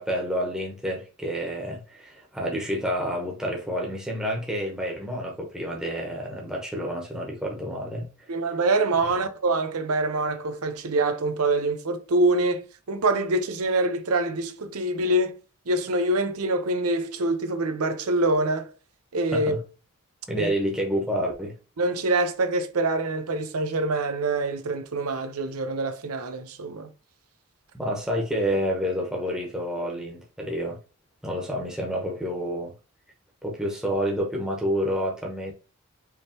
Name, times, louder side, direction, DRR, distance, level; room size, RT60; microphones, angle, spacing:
voice 1, 0.0-8.1 19.3-19.6 20.3-21.5 27.7-30.8 31.2-32.7 33.4-35.5, equal, 5° right, 0.9 m, -29 dB
voice 2, 8.3-15.4 15.7-18.7 19.1-19.5 20.4-20.5 21.8-26.9, right 2 dB, 80° right, 0.7 m, -25 dB
4.9 x 3.1 x 2.9 m
head